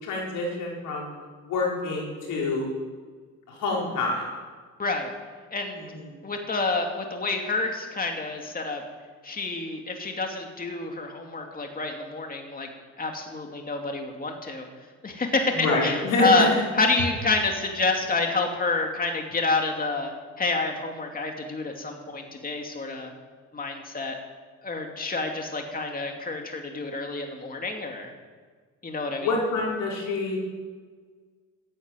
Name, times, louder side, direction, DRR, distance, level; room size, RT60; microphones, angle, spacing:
voice 1, 0.0-1.1 1.4-2.7 3.5-4.2 15.5-16.3 29.2-30.4, left 3 dB, 90° left, -2 dB, 4.8 m, -27 dB
voice 2, 4.8-5.1 5.5-5.8 6.2-8.8 9.2-12.7 13.0-14.7 15.0-23.1 23.5-24.2 24.6-28.1 28.8-29.3, left 3 dB, 30° left, 2 dB, 2.5 m, -28 dB
13.5 x 10.5 x 9.1 m, 1.6 s
cardioid pair, 90°, 30 cm